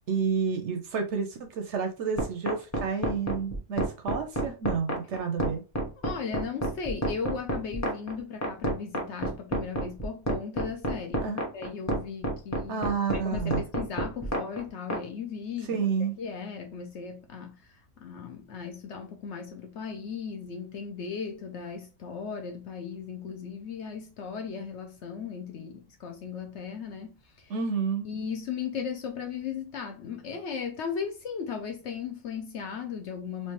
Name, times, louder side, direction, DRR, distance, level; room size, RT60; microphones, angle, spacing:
voice 1, 0.1-5.6 11.2-11.5 12.7-13.6 15.7-16.2 27.5-28.1, right 5 dB, 65° right, 0.8 m, -30 dB
sound 1, 2.2-15.0, right 1 dB, 15° left, 0.6 m, -29 dB
voice 2, 6.0-12.9 13.1-15.7 16.2-27.5 28.0-33.5, left 6 dB, 65° left, 0.8 m, -37 dB
3.3 x 3.0 x 3.0 m
omnidirectional pair, 1.5 m